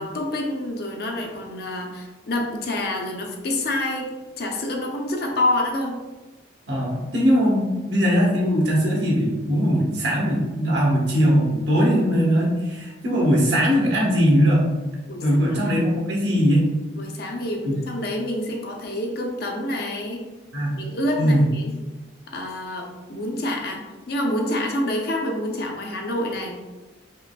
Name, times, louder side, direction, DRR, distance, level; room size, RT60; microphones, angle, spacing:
voice 1, 0.0-4.1 4.4-6.0 8.2-8.3 15.1-15.8 16.9-20.2 20.8-21.7 22.3-26.6, left 1 dB, 50° left, 1 dB, 0.6 m, -27 dB
voice 2, 6.7-14.6 15.2-16.7 17.6-17.7 20.5-20.8 21.2-21.4, equal, 60° right, -4 dB, 1.2 m, -20 dB
4.9 x 3.2 x 2.2 m, 1.2 s
head